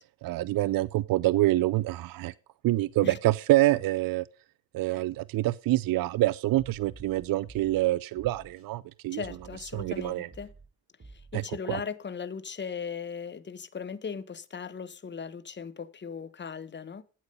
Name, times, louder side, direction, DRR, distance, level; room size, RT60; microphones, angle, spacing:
voice 1, 0.2-2.3 2.6-4.3 4.7-9.2 9.7-10.3 11.3-11.4 11.7-11.8, right 16 dB, 70° right, 0.5 m, -26 dB
sound 1, 6.5-7.8 8.1-8.7 9.2-10.7 11.0-11.5, right 3 dB, 40° right, 3.4 m, -51 dB
voice 2, 9.1-10.5 11.1-17.0, left 6 dB, 30° left, 1.0 m, -38 dB
8.9 x 8.3 x 5.3 m
supercardioid pair, 55°, 36 cm